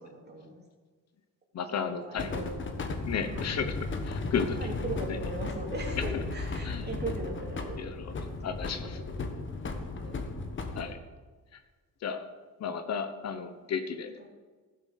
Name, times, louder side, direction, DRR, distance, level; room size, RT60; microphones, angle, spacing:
voice 1, 0.0-0.6 1.8-2.8 3.2-3.5 4.6-7.9 8.2-9.3 9.9-10.2 14.2-14.3, right 2 dB, 30° right, 0 dB, 2.7 m, -40 dB
voice 2, 1.5-2.3 3.1-3.7 4.0-4.6 6.6-6.9 7.8-8.1 8.4-9.0 10.7-11.0 11.5-11.6 12.0-12.2 12.6-14.1, left 6 dB, 50° left, 9 dB, 0.9 m, -33 dB
sound 1, 2.2-10.8, left 3 dB, 35° left, 1.3 m, -35 dB
15.5 x 7.3 x 6.5 m, 1.4 s
wide cardioid pair, 175°, 33 cm